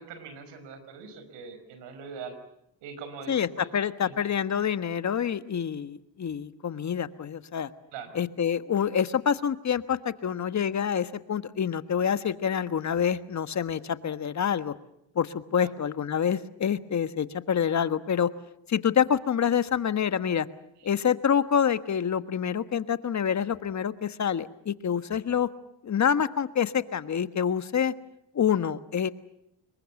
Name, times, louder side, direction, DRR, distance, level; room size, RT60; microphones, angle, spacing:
voice 1, 0.0-2.4 2.8-4.1 7.9-8.2 15.6-15.7, right 5 dB, 80° right, 9 dB, 5.2 m, -42 dB
voice 2, 3.7-7.7 8.1-14.7 15.1-18.3 18.7-20.5 20.8-25.5 25.8-27.9 28.3-29.1, left 8 dB, 40° left, 12 dB, 1.4 m, -27 dB
26.0 x 22.5 x 7.2 m, 0.79 s
supercardioid pair, 75°, 42 cm